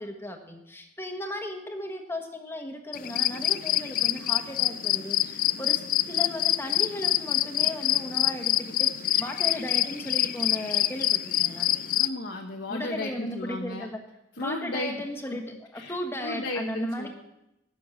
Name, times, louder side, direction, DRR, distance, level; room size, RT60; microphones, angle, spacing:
voice 1, 0.0-11.7 12.7-14.0 14.4-17.1, left 1 dB, 15° left, 4 dB, 1.4 m, -36 dB
sound 1, 2.9-12.1, left 13 dB, 50° left, 0.4 m, -26 dB
voice 2, 12.0-13.9 14.4-15.0 15.7-15.9 16.2-17.1, left 1 dB, 70° left, 0 dB, 1.2 m, -34 dB
12.5 x 6.6 x 7.6 m, 0.88 s
head